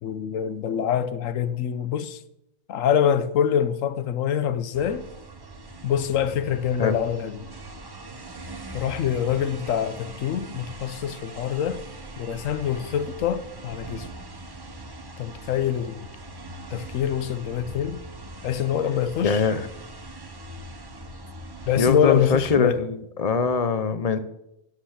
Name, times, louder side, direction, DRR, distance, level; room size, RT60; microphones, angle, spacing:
voice 1, 0.0-2.2 2.7-5.1 5.8-7.5 8.7-11.8 12.2-14.1 15.2-16.1 16.7-18.0 18.4-19.4 21.7-22.8, left 8 dB, 85° left, 1.1 m, -25 dB
sound 1, 4.7-22.6, right 2 dB, 20° right, 0.8 m, -41 dB
voice 2, 19.2-19.6 21.8-24.2, left 5 dB, 35° left, 0.7 m, -22 dB
12.0 x 5.3 x 8.5 m
omnidirectional pair, 1.3 m